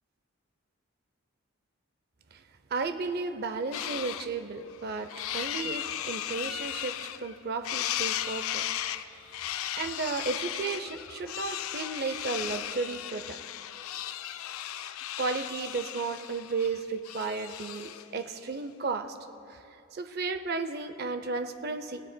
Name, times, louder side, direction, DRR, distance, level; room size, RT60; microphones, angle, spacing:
voice 1, 2.7-8.6 9.8-13.4 15.2-19.2 19.5-19.6 19.9-22.0, right 4 dB, 45° right, 9 dB, 0.5 m, -34 dB
sound 1, 3.7-4.3 4.7-7.4 7.6-18.1, left 12 dB, 80° left, 0.4 m, -36 dB
17.5 x 17.0 x 2.2 m, 2.8 s
head